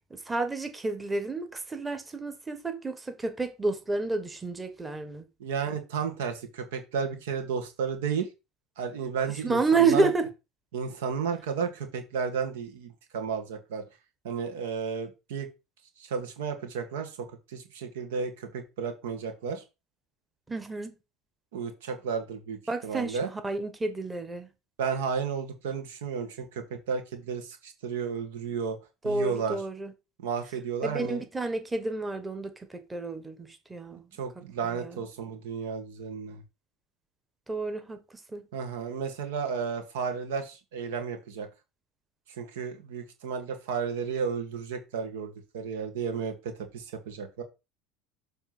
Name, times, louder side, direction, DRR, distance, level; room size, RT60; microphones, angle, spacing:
voice 1, 0.1-5.2 9.4-10.3 20.5-20.9 22.7-24.5 29.0-29.9 30.8-34.0 34.8-35.0 37.5-38.0 38.3-38.4, right 3 dB, 15° right, 1.3 m, -30 dB
voice 2, 5.4-8.3 8.8-10.1 10.7-13.8 14.2-15.5 16.0-19.6 21.5-23.3 24.8-28.8 29.0-29.6 30.2-31.2 34.2-36.4 38.5-41.5 42.4-47.4, right 6 dB, 85° right, 1.7 m, -33 dB
7.2 x 3.4 x 6.0 m
supercardioid pair, 95°, 0 cm